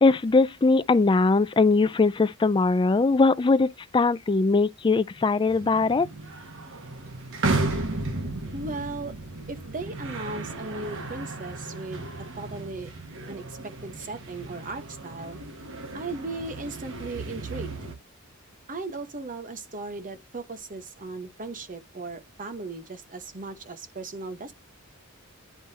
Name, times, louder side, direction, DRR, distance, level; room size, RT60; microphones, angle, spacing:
voice 1, 0.0-6.1, left 3 dB, 20° left, 0.4 m, -21 dB
sound 1, 5.5-17.9, right 2 dB, 60° right, 1.6 m, -34 dB
voice 2, 8.5-9.1 9.5-12.9 13.3-15.4 15.9-17.8 18.7-24.5, right 3 dB, 40° right, 1.0 m, -37 dB
10.0 x 3.4 x 2.8 m
head